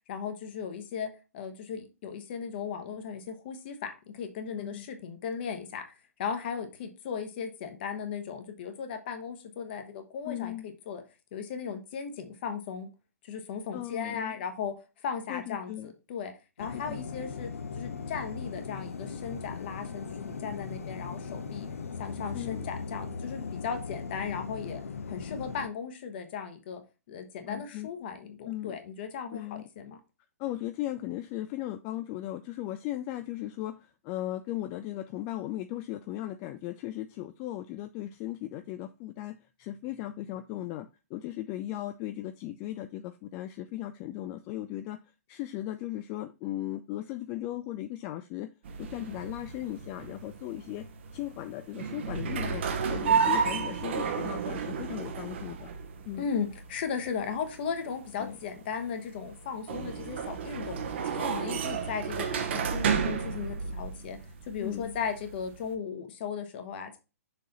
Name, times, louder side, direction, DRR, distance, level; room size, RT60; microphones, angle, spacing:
voice 1, 0.1-5.8 6.2-11.0 11.3-12.9 13.2-16.3 16.6-21.7 22.0-24.8 25.1-26.8 27.1-30.0 56.2-60.8 61.0-67.0, left 6 dB, 40° left, 1.2 m, -37 dB
voice 2, 10.2-10.7 13.7-14.3 15.3-15.9 16.7-17.0 22.3-22.7 27.5-27.9 28.5-28.8 29.3-29.6 30.4-45.0 45.3-48.5 48.8-50.9 51.1-55.7 56.0-56.2 58.2-58.4 64.6-65.0, left 14 dB, 25° left, 0.3 m, -37 dB
sound 1, 16.6-25.7, left 5 dB, 65° left, 0.7 m, -38 dB
sound 2, 48.6-65.7, right 6 dB, 45° right, 0.9 m, -32 dB
6.5 x 3.8 x 4.1 m
figure-of-eight pair, 120°, 8 cm